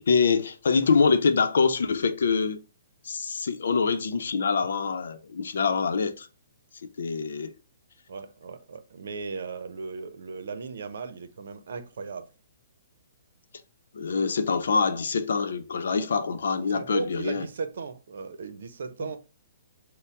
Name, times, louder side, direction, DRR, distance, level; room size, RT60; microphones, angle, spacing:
voice 1, 0.0-2.6 3.0-6.3 7.0-7.5 13.9-17.5, left 5 dB, 75° left, 0.7 m, -25 dB
voice 2, 8.1-12.3 16.7-19.2, right 4 dB, 70° right, 0.8 m, -36 dB
6.7 x 2.2 x 3.5 m
hypercardioid pair, 140°, 0 cm